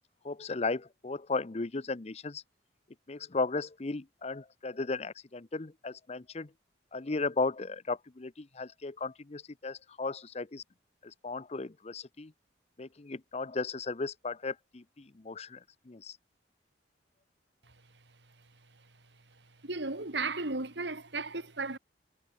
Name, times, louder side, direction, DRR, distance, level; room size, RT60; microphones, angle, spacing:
voice 1, 0.2-2.4 3.1-6.5 6.9-10.6 11.0-12.3 12.8-15.6 15.9-16.2, left 3 dB, 35° left, 0.7 m, -35 dB
voice 2, 19.6-21.8, right 3 dB, 70° right, 2.4 m, -34 dB
head